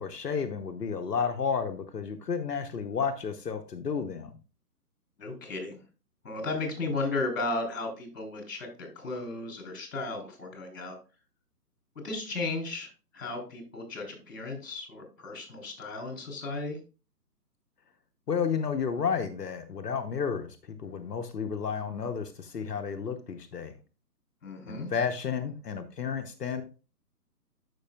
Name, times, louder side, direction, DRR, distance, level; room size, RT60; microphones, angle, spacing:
voice 1, 0.0-4.3 18.3-20.5 20.8-23.7 24.7-26.6, left 6 dB, 75° left, 7 dB, 1.0 m, -31 dB
voice 2, 5.2-5.8 6.2-11.0 12.0-16.8 24.4-24.9, left 3 dB, 55° left, 3 dB, 3.6 m, -35 dB
13.0 x 5.5 x 2.3 m, 0.32 s
figure-of-eight pair, 145°, 48 cm